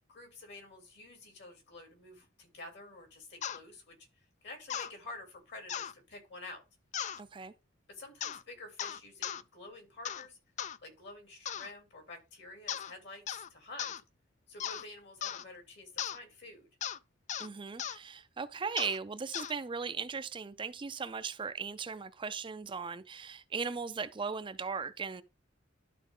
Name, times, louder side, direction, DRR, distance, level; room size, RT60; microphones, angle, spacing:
voice 1, 0.1-6.6 7.9-10.4 10.8-13.9 14.5-16.7, left 2 dB, 60° left, 3.1 m, -49 dB
sound 1, 3.4-3.6 4.7-4.9 5.7-5.9 6.9-7.2 8.2-8.4 8.8-9.4 10.0-10.3 10.6-10.8 11.4-11.7 12.7-12.9 13.3-13.5 13.8-14.0 14.6-14.8 15.2-15.4 16.0-16.2 16.8-17.0 17.3-17.5 17.8-18.0 18.8-19.0 19.3-19.5, left 9 dB, 40° left, 0.3 m, -37 dB
voice 2, 7.2-7.5 17.4-25.2, right 5 dB, 25° right, 0.4 m, -38 dB
12.0 x 4.1 x 3.7 m
head